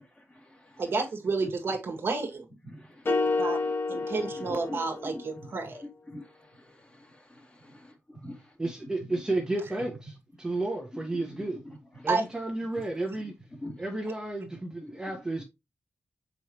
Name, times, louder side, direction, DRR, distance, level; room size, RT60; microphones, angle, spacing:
voice 1, 0.0-0.9 2.6-8.3 8.8-9.2 10.9-12.1 13.1-13.2 13.5-13.9 14.8-15.2, left 1 dB, 25° left, 2.5 m, -46 dB
voice 2, 0.8-2.4 3.0-3.6 3.9-5.8 12.1-12.2, right 3 dB, 55° right, 1.8 m, -30 dB
sound 1, 3.1-5.4, left 3 dB, 50° left, 1.5 m, -29 dB
voice 3, 8.6-11.6 12.0-13.3 13.8-15.4, right 2 dB, 15° right, 1.6 m, -32 dB
6.9 x 4.9 x 3.1 m
wide cardioid pair, 155°, 5 cm